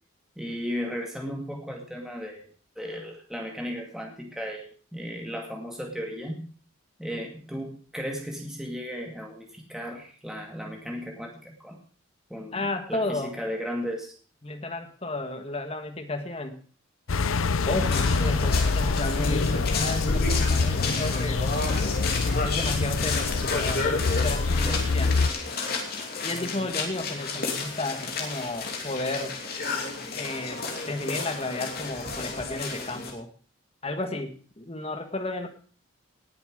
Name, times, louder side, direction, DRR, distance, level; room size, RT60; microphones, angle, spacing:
voice 1, 0.4-2.5 2.8-6.4 7.0-11.8 12.3-14.1 17.7-17.8 24.7-24.9, equal, ahead, 0 dB, 2.2 m, -35 dB
voice 2, 12.5-13.3 14.4-16.6 17.7-21.4 22.4-23.9 24.1-25.1 26.2-29.3 30.1-33.3 33.8-35.5, left 2 dB, 30° left, 6 dB, 1.6 m, -33 dB
sound 1, 17.1-25.3, left 4 dB, 85° left, 0.7 m, -25 dB
sound 2, 17.8-33.1, left 4 dB, 45° left, 2.8 m, -32 dB
19.0 x 7.3 x 5.1 m, 0.43 s
head